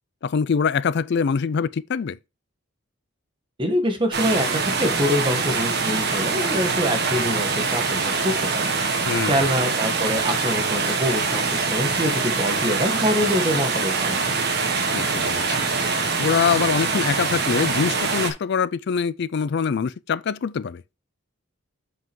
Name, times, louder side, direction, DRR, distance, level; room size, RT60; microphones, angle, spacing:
voice 1, 0.2-2.2 9.1-9.4 14.9-15.6 16.2-20.8, left 6 dB, 55° left, 0.4 m, -24 dB
voice 2, 3.6-14.3, equal, 25° right, 1.5 m, -25 dB
sound 1, 4.1-18.3, right 4 dB, 50° right, 1.5 m, -24 dB
7.7 x 5.6 x 3.0 m
head